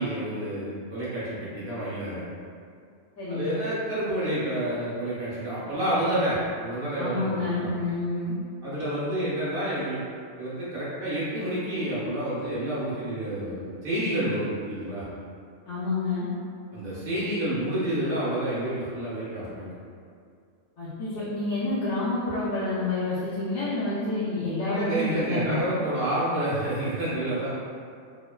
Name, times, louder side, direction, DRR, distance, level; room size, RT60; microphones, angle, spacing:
voice 1, 0.0-2.2 3.3-7.7 8.6-10.0 10.4-15.0 16.7-19.7 24.6-27.5, right 1 dB, 50° right, -10 dB, 0.9 m, -29 dB
voice 2, 3.2-3.5 7.0-8.3 15.7-16.2 20.8-25.6, left 2 dB, 85° left, -14 dB, 1.1 m, -28 dB
2.9 x 2.0 x 2.2 m, 2.3 s
omnidirectional pair, 1.4 m